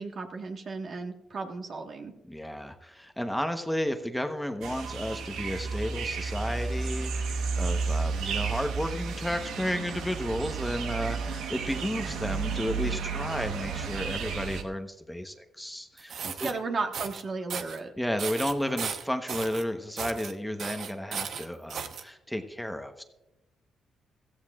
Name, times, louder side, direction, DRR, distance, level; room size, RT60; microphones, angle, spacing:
voice 1, 0.0-2.1 16.4-17.9, right 4 dB, 50° right, 4 dB, 1.4 m, -34 dB
voice 2, 2.3-16.5 18.0-23.0, left 1 dB, 5° left, 6 dB, 1.0 m, -33 dB
sound 1, 4.6-14.6, right 5 dB, 85° right, 1.1 m, -32 dB
sound 2, 16.0-16.5 16.9-17.2 17.5-17.8 18.2-19.6 20.0-20.3 20.6-22.0, right 7 dB, 70° right, 0.9 m, -35 dB
16.0 x 14.5 x 2.4 m, 0.95 s
cardioid pair, 75°, 0 cm